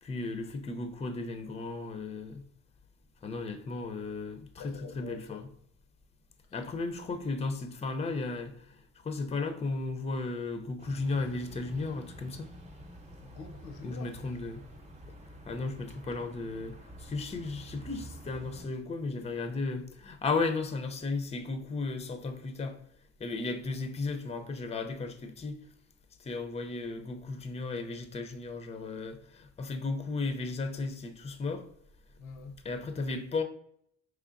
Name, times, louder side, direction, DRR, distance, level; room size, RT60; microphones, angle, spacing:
voice 1, 0.0-2.4 3.2-5.5 6.5-12.5 13.8-14.6 15.4-22.8 23.2-25.6 26.2-31.6 32.6-33.4, left 3 dB, 20° left, 0.5 m, -35 dB
voice 2, 4.6-5.4 13.2-14.1 32.2-32.6, left 4 dB, 80° left, 0.6 m, -45 dB
sound 1, 10.8-18.7, right 1 dB, 25° right, 0.8 m, -49 dB
4.5 x 3.2 x 2.5 m
cardioid pair, 90°, 30 cm